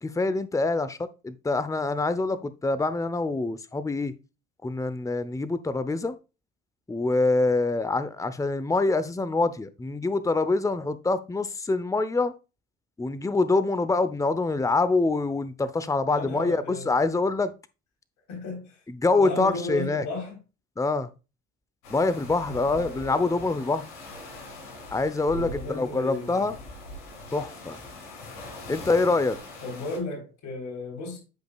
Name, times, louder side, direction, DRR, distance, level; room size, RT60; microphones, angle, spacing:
voice 1, 0.0-4.2 4.6-6.2 6.9-12.3 13.0-17.5 19.0-20.0 20.8-21.1 21.9-23.9 24.9-26.6 27.3-27.8 28.7-29.4, left 3 dB, 10° left, 0.7 m, -25 dB
voice 2, 16.1-16.9 18.3-18.8 19.1-20.4 22.5-23.6 25.3-26.5 29.6-31.2, left 3 dB, 60° left, 3.9 m, -35 dB
sound 1, 21.8-30.0, left 2 dB, 80° left, 3.5 m, -42 dB
11.5 x 5.1 x 2.4 m
hypercardioid pair, 60°, 33 cm